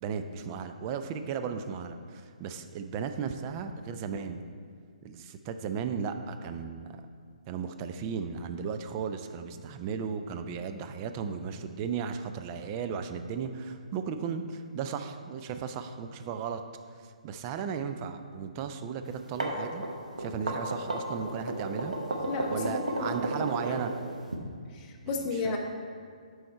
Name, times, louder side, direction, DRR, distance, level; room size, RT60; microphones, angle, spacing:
voice 1, 0.0-4.4 5.0-6.9 7.5-16.6 17.2-19.8 20.2-21.9 22.5-23.9 25.2-25.6, right 6 dB, 25° right, 7 dB, 0.4 m, -35 dB
sound 1, 19.1-24.4, right 2 dB, 70° right, 1.0 m, -33 dB
voice 2, 22.3-23.1 24.7-25.6, left 3 dB, 25° left, 1 dB, 0.8 m, -33 dB
7.7 x 4.8 x 4.3 m, 2.1 s
figure-of-eight pair, 130°, 4 cm